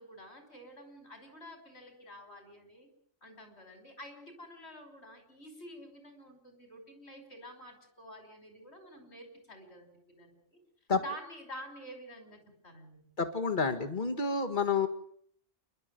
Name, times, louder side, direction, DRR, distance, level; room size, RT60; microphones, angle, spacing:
voice 1, 0.0-2.9 3.2-10.6 11.0-13.1, equal, 60° left, 6 dB, 5.7 m, -49 dB
voice 2, 13.2-14.9, left 5 dB, 40° left, 8 dB, 2.0 m, -29 dB
28.0 x 12.0 x 9.4 m, 0.65 s
omnidirectional pair, 1.3 m